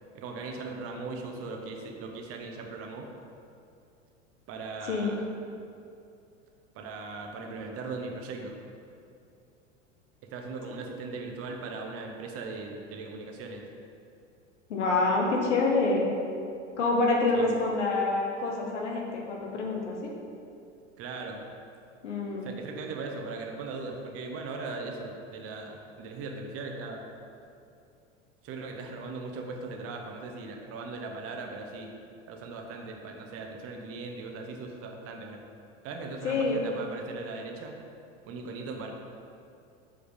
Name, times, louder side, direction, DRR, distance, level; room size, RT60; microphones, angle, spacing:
voice 1, 0.1-3.1 4.5-5.2 6.7-8.6 10.3-13.7 17.3-17.5 21.0-21.4 22.4-27.1 28.4-31.9 32.3-35.4 35.8-37.7 38.2-38.9, right 3 dB, 40° right, 2 dB, 1.1 m, -39 dB
voice 2, 14.7-16.1 16.8-20.1 22.0-22.5 36.2-36.6, left 3 dB, 70° left, -1 dB, 1.5 m, -27 dB
7.3 x 4.8 x 5.2 m, 2.5 s
figure-of-eight pair, 85°, 37 cm